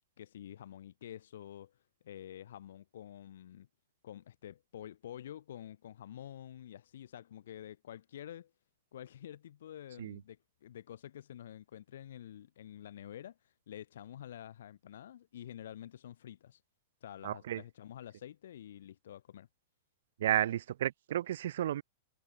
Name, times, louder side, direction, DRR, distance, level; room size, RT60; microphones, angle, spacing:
voice 1, 0.2-3.7 4.0-8.5 8.9-16.6 17.0-19.5, left 11 dB, 60° left, 6.2 m, -49 dB
voice 2, 17.2-17.6 20.2-21.8, right 11 dB, 60° right, 1.2 m, -32 dB
figure-of-eight pair, 100°, 0 cm